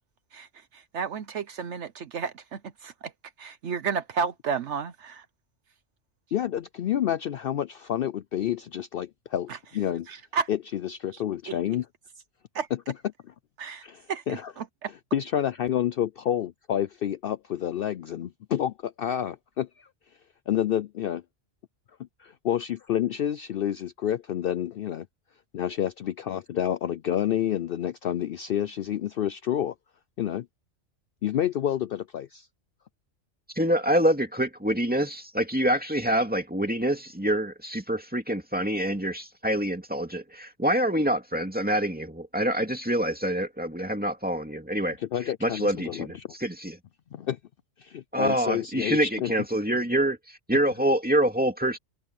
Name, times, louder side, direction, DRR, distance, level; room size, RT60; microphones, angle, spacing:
voice 1, 0.7-2.9 3.4-5.2 10.1-10.5 11.5-11.6 12.5-12.7 13.6-13.8 14.1-14.9, right 6 dB, 70° right, 1.1 m, -32 dB
voice 2, 6.3-10.1 10.5-11.9 12.7-12.8 13.2-13.3 13.8-14.5 14.9-19.7 20.5-21.2 22.2-25.1 25.5-29.7 30.2-30.5 31.2-32.5 45.0-46.3 47.1-47.4 47.8-49.3, left 10 dB, 60° left, 0.6 m, -29 dB
voice 3, 33.6-45.0 45.4-46.8 48.1-50.2 50.5-51.8, right 1 dB, 5° right, 2.2 m, -26 dB
omnidirectional pair, 1.3 m